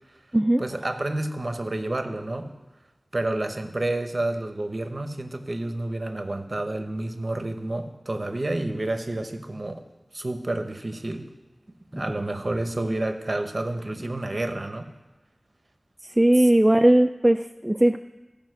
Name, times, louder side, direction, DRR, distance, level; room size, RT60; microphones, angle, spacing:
voice 1, 0.6-2.5 3.1-9.8 10.1-11.3 11.9-14.9 16.4-16.5, right 2 dB, 45° right, 7 dB, 0.9 m, -29 dB
voice 2, 16.2-18.0, right 1 dB, 15° right, 6 dB, 0.3 m, -18 dB
15.0 x 5.1 x 6.4 m, 1.1 s
wide cardioid pair, 65°, 0 cm